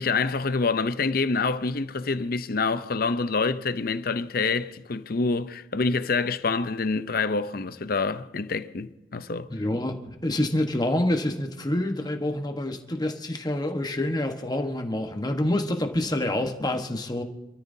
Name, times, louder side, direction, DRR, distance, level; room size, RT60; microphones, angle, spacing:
voice 1, 0.0-9.5, left 4 dB, 55° left, 0.6 m, -26 dB
voice 2, 9.5-10.0 10.2-17.2, left 1 dB, 20° left, 1.2 m, -27 dB
28.0 x 13.5 x 2.7 m
head